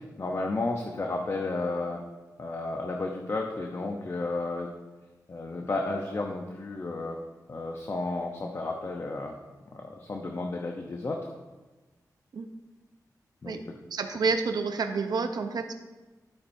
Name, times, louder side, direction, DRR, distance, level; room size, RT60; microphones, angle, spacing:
voice 1, 0.0-2.0 2.4-4.7 5.3-7.2 7.5-9.4 9.7-11.3 13.4-13.6, left 2 dB, 45° left, 1 dB, 0.8 m, -32 dB
voice 2, 13.9-15.7, right 4 dB, 85° right, 7 dB, 0.8 m, -29 dB
12.0 x 8.7 x 2.7 m, 1.2 s
wide cardioid pair, 110°, 7 cm